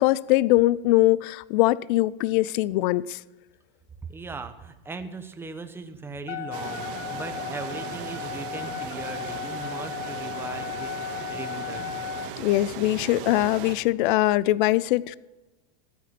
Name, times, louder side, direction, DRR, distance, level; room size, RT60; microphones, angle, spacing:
voice 1, 0.0-3.2 12.4-15.2, left 17 dB, 60° left, 0.5 m, -22 dB
voice 2, 4.1-12.1, right 3 dB, 10° right, 0.9 m, -39 dB
Wind instrument woodwind instrument, 6.3-12.3, left 11 dB, 90° left, 1.6 m, -35 dB
sound 1, 6.5-13.8, right 9 dB, 65° right, 1.7 m, -38 dB
13.5 x 9.3 x 5.9 m
supercardioid pair, 140°, 29 cm